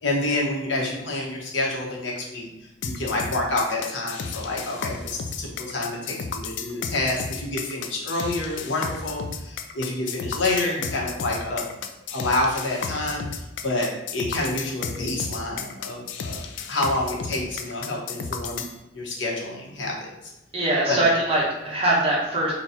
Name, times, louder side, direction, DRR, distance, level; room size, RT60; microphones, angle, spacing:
voice 1, 0.0-2.5 2.8-11.7 12.1-18.6 18.9-20.3 20.9-21.1, left 2 dB, 90° left, -2 dB, 1.0 m, -28 dB
sound 1, 2.8-18.7, left 5 dB, 70° left, 0.4 m, -33 dB
voice 2, 20.5-22.5, right 1 dB, 30° right, -5 dB, 1.2 m, -22 dB
4.0 x 2.3 x 4.2 m, 0.94 s
head